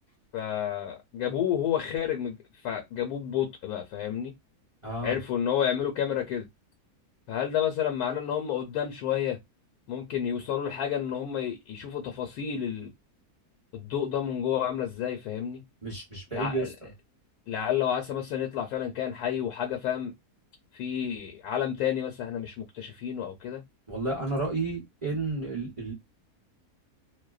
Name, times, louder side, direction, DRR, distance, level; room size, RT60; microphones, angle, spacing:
voice 1, 0.3-2.4 2.6-4.3 5.0-6.5 7.3-9.4 9.9-12.9 13.7-15.6 16.3-16.7 17.5-20.1 20.7-23.6, left 9 dB, 80° left, 1.1 m, -30 dB
voice 2, 4.8-5.2 15.8-16.7 23.9-25.9, right 3 dB, 30° right, 0.6 m, -31 dB
2.6 x 2.1 x 2.3 m
omnidirectional pair, 1.6 m